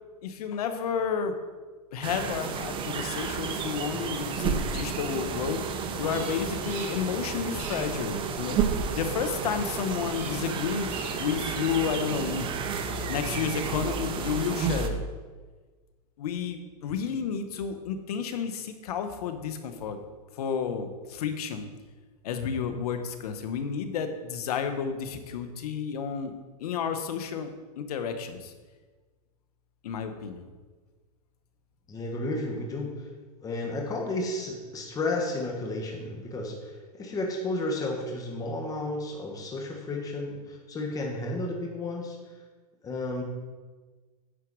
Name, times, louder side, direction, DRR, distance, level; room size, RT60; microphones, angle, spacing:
voice 1, 0.2-1.3 1.9-8.6 8.9-12.5 13.1-15.0 16.2-20.0 20.4-21.7 22.2-26.3 26.6-28.5 29.8-30.4, left 7 dB, 70° left, 8 dB, 1.2 m, -31 dB
sound 1, 2.0-14.9, right 6 dB, 25° right, 0.8 m, -31 dB
Bird vocalization bird call bird song, 6.0-7.2 7.5-8.0 10.0-10.5 10.8-11.4, right 4 dB, 45° right, 2.8 m, -43 dB
voice 2, 31.9-33.1 33.4-42.2 42.8-43.2, left 2 dB, 15° left, 0 dB, 1.6 m, -32 dB
10.0 x 4.6 x 6.3 m, 1.4 s
hypercardioid pair, 130°, 20 cm